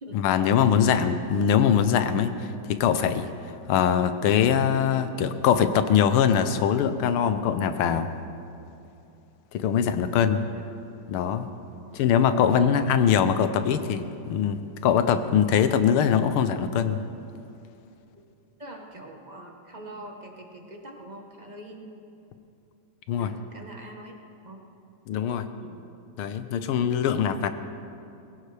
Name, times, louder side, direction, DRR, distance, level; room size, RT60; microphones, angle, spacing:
voice 1, 0.1-3.3 3.7-8.1 9.5-10.4 11.1-11.5 11.9-17.0 23.1-23.3 25.1-25.5 26.2-27.5, left 8 dB, 80° left, 10 dB, 1.6 m, -22 dB
voice 2, 18.6-22.1 23.2-24.6 25.6-25.8, right 1 dB, 30° right, 1 dB, 0.8 m, -43 dB
21.5 x 16.0 x 3.3 m, 2.7 s
omnidirectional pair, 2.4 m